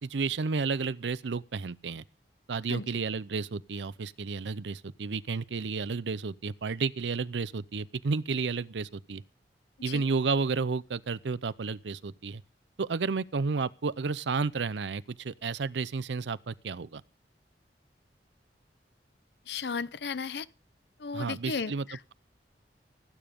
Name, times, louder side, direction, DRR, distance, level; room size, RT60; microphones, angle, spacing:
voice 1, 0.0-2.0 2.5-9.2 9.8-12.4 12.8-17.0 21.1-21.9, right 4 dB, 85° right, 0.6 m, -31 dB
voice 2, 19.5-20.5 21.0-22.0, left 5 dB, 70° left, 0.6 m, -35 dB
17.5 x 9.1 x 5.2 m
head